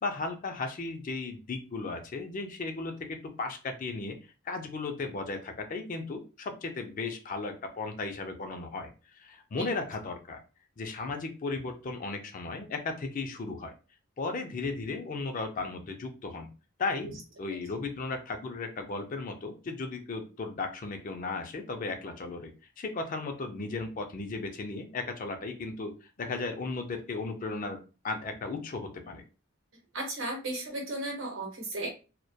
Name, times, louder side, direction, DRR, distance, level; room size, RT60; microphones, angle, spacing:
voice 1, 0.0-4.2 4.4-10.4 10.8-13.7 14.2-16.5 16.8-22.5 22.8-29.2, left 3 dB, 40° left, 5 dB, 0.4 m, -35 dB
voice 2, 29.9-31.9, right 2 dB, 65° right, 1 dB, 0.9 m, -35 dB
2.2 x 2.1 x 2.6 m, 0.33 s
head